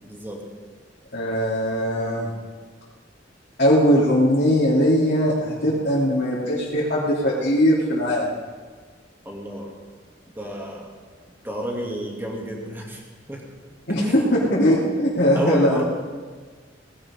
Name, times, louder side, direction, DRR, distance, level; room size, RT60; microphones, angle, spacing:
voice 1, 0.0-0.4 9.2-9.7 10.4-10.9 11.4-13.0 13.3-13.4 14.0-14.3 15.3-15.8, equal, 10° right, -2 dB, 2.7 m, -30 dB
voice 2, 1.1-2.3 3.6-8.3 13.9-15.8, equal, 60° left, -9 dB, 3.2 m, -20 dB
19.5 x 16.0 x 3.8 m, 1.5 s
head